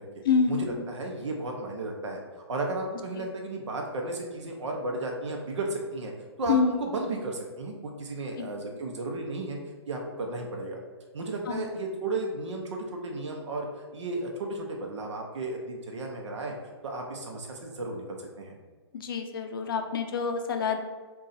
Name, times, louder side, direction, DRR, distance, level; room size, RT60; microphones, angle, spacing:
voice 1, 0.2-0.8 3.2-3.3 6.5-6.7 8.4-8.5 11.5-11.7 18.9-20.8, left 5 dB, 50° left, 5 dB, 0.4 m, -27 dB
voice 2, 0.9-2.2 2.5-6.1 6.4-9.6 9.9-10.8 11.1-16.6 16.8-18.5, right 2 dB, 85° right, 1 dB, 0.7 m, -34 dB
3.8 x 2.3 x 3.9 m, 1.4 s
hypercardioid pair, 165°, 15 cm